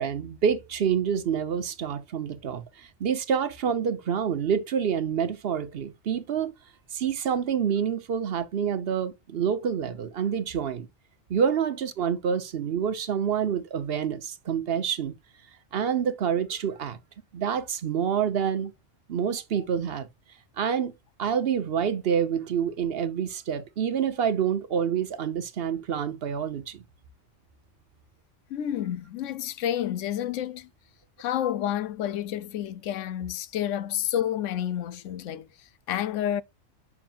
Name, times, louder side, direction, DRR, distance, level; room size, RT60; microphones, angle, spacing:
voice 1, 0.0-6.5 6.9-10.9 11.3-15.1 15.7-17.0 17.3-18.7 19.1-20.1 20.6-20.9 21.2-26.8, right 7 dB, 55° right, 1.0 m, -27 dB
voice 2, 28.5-30.7 31.2-35.5 35.9-36.4, left 11 dB, 85° left, 0.9 m, -29 dB
7.3 x 5.8 x 2.4 m
omnidirectional pair, 1.2 m